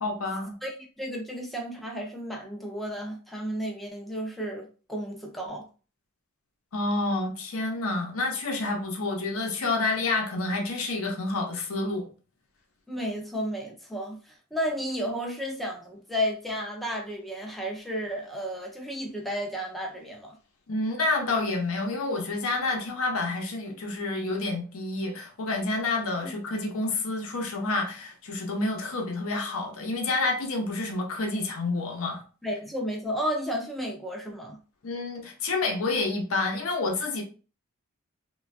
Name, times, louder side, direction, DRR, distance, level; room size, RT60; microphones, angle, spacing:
voice 1, 0.0-0.5 6.7-12.1 20.7-32.2 34.8-37.2, left 2 dB, 75° left, 0.7 m, -29 dB
voice 2, 0.6-5.6 12.9-20.4 26.2-26.3 32.4-34.6, equal, ahead, 0.4 m, -33 dB
3.2 x 2.3 x 2.4 m
head